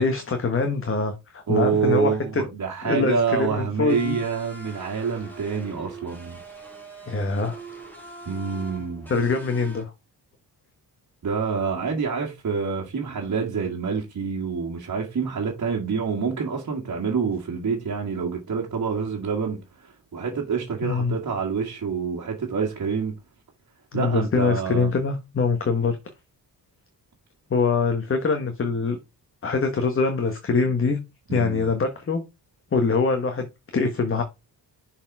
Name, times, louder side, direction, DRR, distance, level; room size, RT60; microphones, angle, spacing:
voice 1, 0.0-2.4 2.8-4.2 7.1-7.6 9.1-9.9 20.8-21.1 23.9-26.0 27.5-29.0 29.4-31.0 31.3-32.2 32.7-33.5 33.7-34.2, left 4 dB, 30° left, 1.2 m, -23 dB
voice 2, 1.5-6.4 8.3-9.1 11.2-23.1 23.9-24.9 31.3-31.7, right 6 dB, 45° right, 1.9 m, -27 dB
sound 1, 3.9-9.8, right 2 dB, 5° left, 2.6 m, -42 dB
6.7 x 4.4 x 4.7 m
cardioid pair, 125°, 41 cm